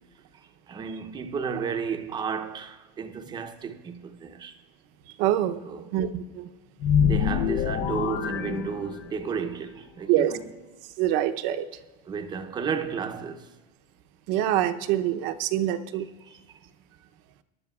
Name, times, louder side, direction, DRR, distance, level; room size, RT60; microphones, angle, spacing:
voice 1, 0.3-4.5 5.6-6.0 7.0-10.5 12.1-13.5 16.2-16.6, right 6 dB, 20° right, 0.7 m, -33 dB
voice 2, 5.2-5.6 5.9-6.5 10.1-10.3 11.0-11.7 14.3-16.1, right 12 dB, 60° right, 0.8 m, -25 dB
sound 1, 6.8-9.3, left 8 dB, 50° left, 0.6 m, -25 dB
23.5 x 11.5 x 2.4 m
cardioid pair, 165°, 21 cm